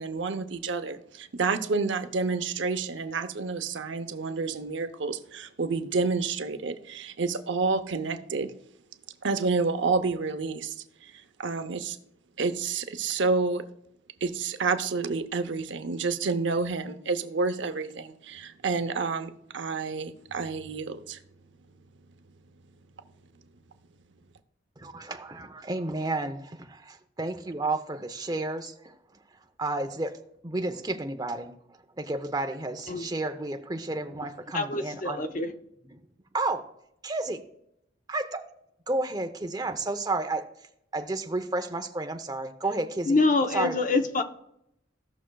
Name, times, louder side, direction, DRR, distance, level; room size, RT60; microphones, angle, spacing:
voice 1, 0.0-8.5 9.2-10.8 11.0-11.1 11.4-12.0 12.4-13.6 14.2-21.2, right 4 dB, 75° right, 0.7 m, -29 dB
voice 2, 24.8-29.0 29.6-31.6 31.9-35.3 35.8-36.0 36.3-36.6 37.0-37.4 38.1-38.5 38.9-40.5 40.9-43.2 43.5-43.8, right 2 dB, 20° right, 0.7 m, -31 dB
voice 3, 34.5-35.5 43.1-44.2, left 3 dB, 45° left, 0.7 m, -25 dB
16.0 x 6.2 x 2.3 m
head